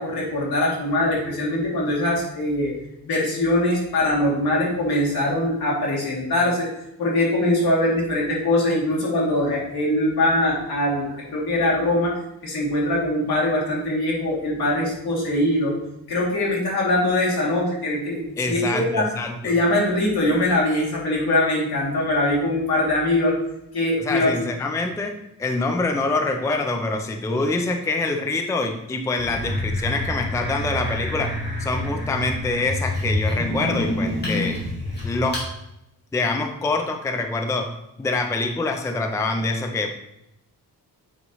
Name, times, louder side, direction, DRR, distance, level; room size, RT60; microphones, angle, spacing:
voice 1, 0.0-2.7 3.0-6.7 7.0-15.7 16.1-19.1 19.4-23.4 23.7-24.4, left 1 dB, 75° left, -5 dB, 2.6 m, -22 dB
voice 2, 18.4-19.5 24.0-31.3 31.6-34.6 35.0-35.4 36.1-37.7 38.0-39.9, left 3 dB, 10° left, 4 dB, 0.4 m, -25 dB
sound 1, 29.2-35.5, left 1 dB, 25° left, 2.2 m, -27 dB
8.2 x 5.4 x 3.0 m, 0.83 s
wide cardioid pair, 180°, 38 cm